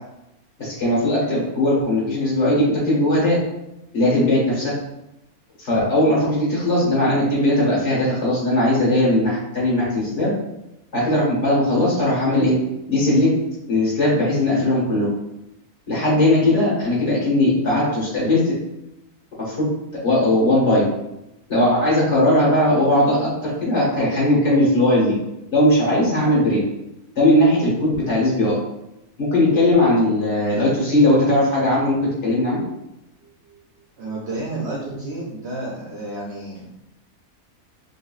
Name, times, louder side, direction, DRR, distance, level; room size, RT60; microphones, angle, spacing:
voice 1, 0.6-3.4 3.9-4.7 5.6-10.3 10.9-12.5 12.9-13.3 13.7-15.1 15.9-18.5 19.4-19.7 20.0-20.8 21.5-25.1 25.5-26.6 27.2-28.6 29.2-32.6, left 1 dB, 50° left, -6 dB, 1.7 m, -18 dB
voice 2, 34.0-36.7, right 2 dB, 55° right, -4 dB, 0.9 m, -31 dB
5.0 x 2.7 x 2.4 m, 0.89 s
omnidirectional pair, 1.6 m